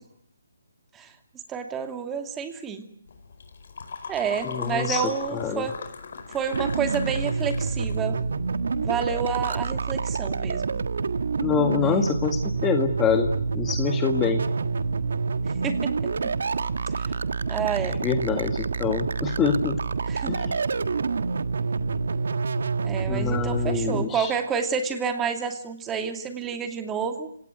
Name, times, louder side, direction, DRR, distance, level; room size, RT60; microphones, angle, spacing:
voice 1, 1.5-2.8 4.1-5.7 6.3-8.2 8.7-10.8 11.8-12.0 15.6-15.9 17.0-17.1 17.5-18.0 20.1-20.3 22.8-27.3, right 6 dB, 15° right, 6 dB, 2.6 m, -29 dB
sound 1, 3.1-8.3, left 5 dB, 55° left, 4.8 m, -38 dB
voice 2, 4.4-5.0 5.3-5.7 11.4-14.4 18.0-19.8 20.2-20.6 23.1-24.3, left 6 dB, 15° left, 6 dB, 1.6 m, -26 dB
sound 2, 6.5-24.1, right 4 dB, 65° right, 1.5 m, -27 dB
29.5 x 18.0 x 9.3 m, 0.65 s
figure-of-eight pair, 150°, 0 cm